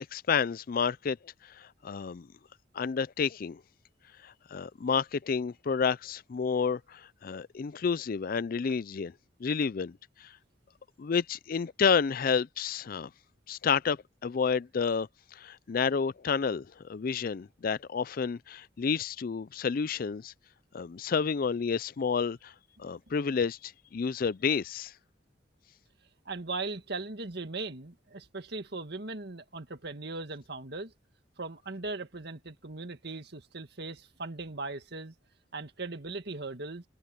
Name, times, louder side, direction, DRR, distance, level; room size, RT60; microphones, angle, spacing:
voice 1, 0.1-1.2 1.6-2.3 2.7-3.6 4.2-9.1 9.4-10.3 11.0-13.1 13.5-14.0 14.2-20.3 20.7-22.5 22.8-24.9, left 6 dB, 50° left, 0.4 m, -30 dB
voice 2, 26.3-30.9 31.4-35.1 35.5-36.8, right 3 dB, 60° right, 1.9 m, -39 dB
head